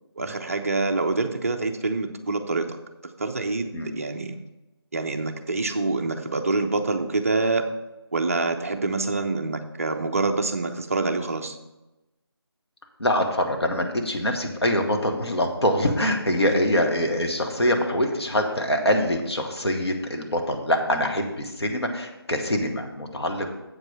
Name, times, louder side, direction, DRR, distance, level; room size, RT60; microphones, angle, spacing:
voice 1, 0.2-2.8 3.2-4.4 4.9-7.7 8.1-11.6, right 3 dB, 35° right, 5 dB, 0.6 m, -26 dB
voice 2, 13.0-23.5, left 1 dB, 75° left, 2 dB, 1.5 m, -24 dB
8.0 x 5.3 x 5.4 m, 1.0 s
figure-of-eight pair, 160°, 14 cm